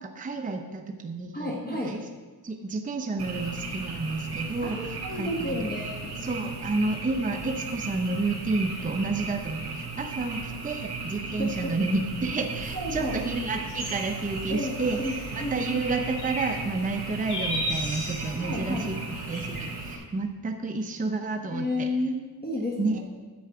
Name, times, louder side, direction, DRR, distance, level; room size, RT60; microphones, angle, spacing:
voice 1, 0.0-2.0 2.4-4.8 5.1-5.6 6.2-15.0 15.3-19.0 19.3-21.9 22.8-23.0, right 3 dB, 20° right, 3 dB, 0.7 m, -30 dB
voice 2, 1.3-1.9 4.6-6.1 11.4-11.7 12.7-13.2 14.5-15.1 15.4-15.7 18.4-18.9 21.5-23.0, left 1 dB, 25° left, -2 dB, 1.4 m, -31 dB
Frog, 3.2-19.9, right 4 dB, 65° right, 2.5 m, -36 dB
sound 1, 12.6-19.7, equal, 45° left, 3.1 m, -37 dB
10.5 x 4.7 x 7.8 m, 1.4 s
wide cardioid pair, 140°, 41 cm